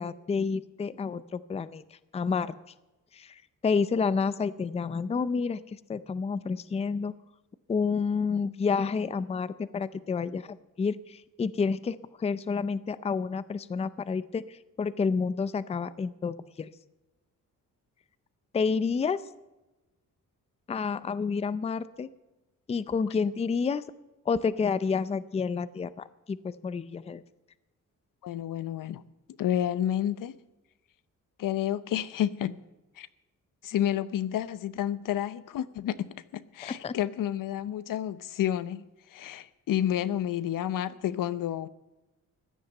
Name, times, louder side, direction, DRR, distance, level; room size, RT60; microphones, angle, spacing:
voice 1, 0.0-1.8 2.1-2.5 3.1-7.1 7.7-16.7 18.5-19.2 20.7-22.1 22.7-23.8 24.3-27.2 36.6-36.9, left 5 dB, 20° left, 0.5 m, -29 dB
voice 2, 28.2-29.0 29.4-30.3 31.4-32.6 33.0-33.1 33.6-38.9 39.1-41.7, left 11 dB, 80° left, 0.8 m, -30 dB
15.5 x 11.0 x 6.5 m
wide cardioid pair, 160°, 32 cm